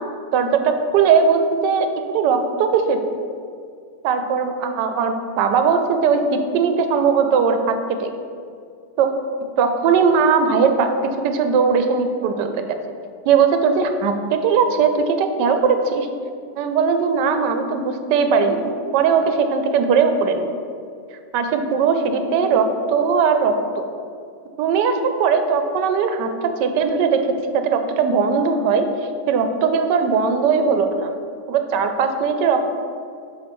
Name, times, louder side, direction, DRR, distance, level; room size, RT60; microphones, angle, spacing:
voice 1, 0.3-3.0 4.0-7.6 8.0-8.1 9.0-9.1 9.6-10.9 11.2-12.8 13.3-16.1 16.6-19.2 19.5-20.5 21.3-23.8 24.6-27.2 27.5-28.9 29.3-31.1 31.5-32.6, right 5 dB, 85° right, 7 dB, 1.2 m, -19 dB
7.0 x 3.1 x 5.2 m, 2.3 s
omnidirectional pair, 1.8 m